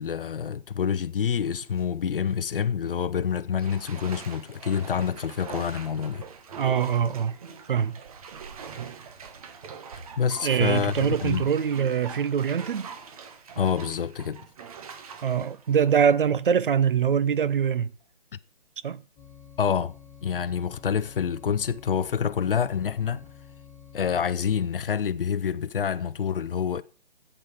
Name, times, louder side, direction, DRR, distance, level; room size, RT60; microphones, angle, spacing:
voice 1, 0.0-6.3 10.2-11.4 13.6-14.4 19.6-19.9 20.2-23.2 23.9-26.8, left 7 dB, 55° left, 0.7 m, -27 dB
Bathtub (filling or washing), 1.4-1.8 2.3-2.4 3.6-16.7 17.1-17.2, right 6 dB, 35° right, 1.3 m, -43 dB
voice 2, 6.6-7.3 7.7-7.9 10.4-12.9 15.2-17.9 18.8-19.0, right 7 dB, 55° right, 0.7 m, -23 dB
sound 1, 19.2-24.7, left 8 dB, 10° left, 1.7 m, -49 dB
10.0 x 8.2 x 6.0 m
hypercardioid pair, 155°, 32 cm